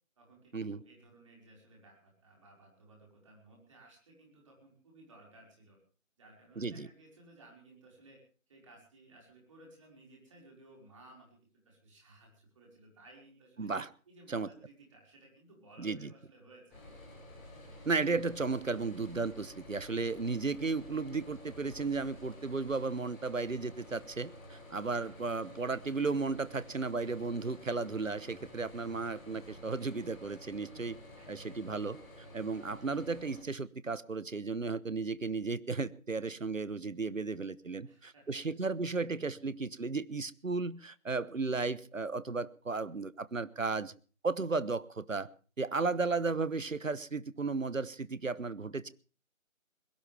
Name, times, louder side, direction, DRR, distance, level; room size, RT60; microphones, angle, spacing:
voice 1, 0.2-5.8 6.2-8.2 8.5-11.4 11.7-13.7 14.1-17.0 25.0-25.2 26.5-27.0 31.2-31.6 37.8-38.4 38.9-39.4 45.9-46.2, right 2 dB, 25° right, -1 dB, 5.2 m, -58 dB
voice 2, 6.6-6.9 13.6-13.9 14.3-14.5 15.8-16.1 17.8-31.0 31.3-32.0 32.3-43.9 44.2-45.3 45.6-48.9, right 4 dB, 70° right, 18 dB, 1.2 m, -34 dB
sound 1, 16.7-33.4, left 1 dB, 5° left, 2.1 m, -52 dB
21.5 x 17.5 x 3.4 m, 0.37 s
figure-of-eight pair, 160°, 40 cm